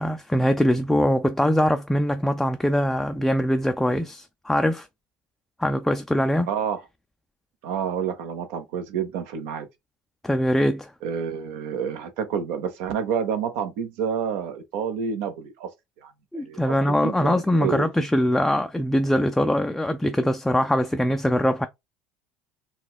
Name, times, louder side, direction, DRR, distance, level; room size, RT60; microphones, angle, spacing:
voice 1, 0.0-4.9 5.6-6.5 10.2-10.9 16.3-21.7, equal, 5° left, 0.3 m, -22 dB
voice 2, 6.5-6.8 7.6-9.7 11.0-15.7 16.0-17.9, right 7 dB, 75° right, 0.8 m, -29 dB
4.0 x 2.2 x 2.3 m
supercardioid pair, 85°, 3 cm